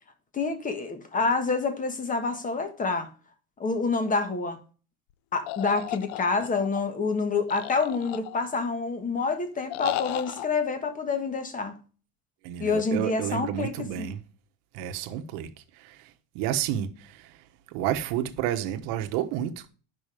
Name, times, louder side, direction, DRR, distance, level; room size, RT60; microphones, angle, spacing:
voice 1, 0.3-3.1 3.6-4.6 5.3-11.7 12.6-14.1, left 4 dB, 20° left, 1.5 m, -27 dB
sound 1, 5.5-6.8 7.5-8.6 9.7-10.5, left 15 dB, 65° left, 0.6 m, -34 dB
voice 2, 12.4-14.2 14.7-19.7, right 11 dB, 65° right, 1.3 m, -31 dB
9.2 x 6.1 x 5.0 m
cardioid pair, 140°, 41 cm